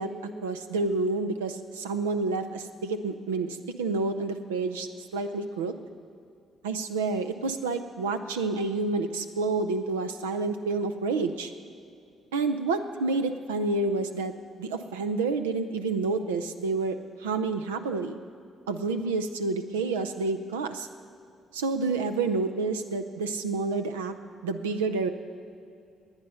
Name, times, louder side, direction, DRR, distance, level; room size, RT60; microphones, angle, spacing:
voice 1, 0.0-5.7 6.6-11.5 12.3-14.3 14.6-18.2 18.7-20.9 21.5-24.1 24.4-25.1, right 3 dB, 90° right, 8 dB, 0.6 m, -29 dB
20.0 x 8.9 x 5.6 m, 2.5 s
hypercardioid pair, 50°, 0 cm